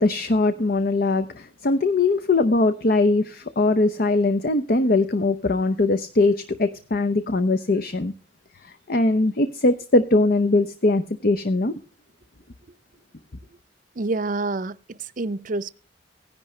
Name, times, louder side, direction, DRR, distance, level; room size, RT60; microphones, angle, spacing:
voice 1, 0.0-8.1 8.9-11.7, left 2 dB, 55° left, 0.8 m, -21 dB
voice 2, 13.9-15.7, right 2 dB, 50° right, 0.6 m, -28 dB
16.5 x 10.5 x 3.2 m
head